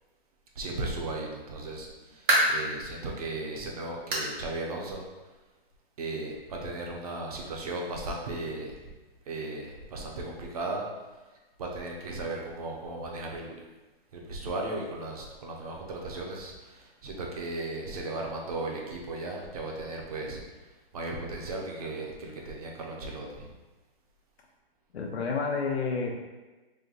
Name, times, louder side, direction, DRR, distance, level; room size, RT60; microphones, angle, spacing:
voice 1, 0.6-5.0 6.0-8.9 9.3-10.9 11.6-13.5 14.1-20.4 20.9-23.5, right 2 dB, 40° right, -1 dB, 0.7 m, -36 dB
sound 1, 2.0-2.7 3.2-3.3 4.1-4.4 4.7-4.8 5.3-5.4 6.5-6.6, right 1 dB, 55° right, 1.3 m, -26 dB
voice 2, 24.9-26.1, left 4 dB, 90° left, 0 dB, 0.6 m, -29 dB
3.4 x 2.6 x 3.8 m, 1.2 s
hypercardioid pair, 160°, 31 cm